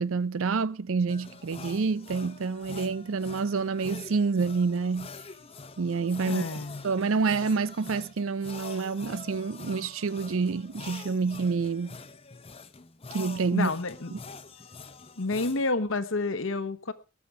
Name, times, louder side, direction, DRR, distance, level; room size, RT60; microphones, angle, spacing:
voice 1, 0.0-5.1 5.8-6.5 6.8-12.0 13.1-13.7 14.1-14.2, right 4 dB, 80° right, 0.6 m, -28 dB
sound 1, 1.1-15.7, left 4 dB, 30° left, 0.9 m, -45 dB
voice 2, 6.3-6.8 13.5-14.1 15.2-16.9, left 3 dB, 75° left, 1.2 m, -29 dB
19.0 x 7.0 x 4.9 m
head